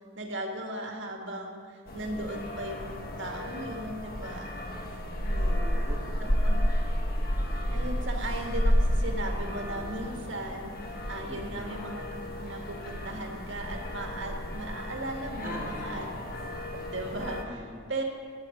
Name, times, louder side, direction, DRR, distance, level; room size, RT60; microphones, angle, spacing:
voice 1, 0.0-4.6 5.2-5.9 6.4-6.5 7.7-16.1 16.9-17.4 17.9-18.0, right 1 dB, 60° right, 1 dB, 1.9 m, -37 dB
sound 1, 1.9-17.4, equal, 45° left, 1.7 m, -31 dB
voice 2, 5.5-6.5 11.3-11.7 15.4-16.1 17.4-17.9, equal, 10° right, -3 dB, 1.6 m, -43 dB
13.5 x 7.7 x 9.8 m, 2.4 s
head